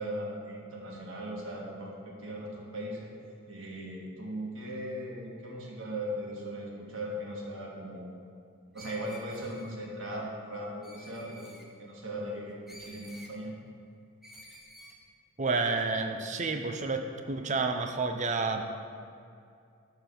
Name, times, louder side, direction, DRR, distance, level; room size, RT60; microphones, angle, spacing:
voice 1, 0.0-3.1 3.5-8.1 8.7-13.5, equal, 60° right, -3 dB, 1.9 m, -38 dB
Screech, 8.7-9.8 10.8-11.7 12.7-13.3 14.2-15.0, left 1 dB, ahead, 0.8 m, -51 dB
voice 2, 15.4-18.6, right 3 dB, 35° right, 5 dB, 0.6 m, -30 dB
11.5 x 4.1 x 6.8 m, 2.4 s
head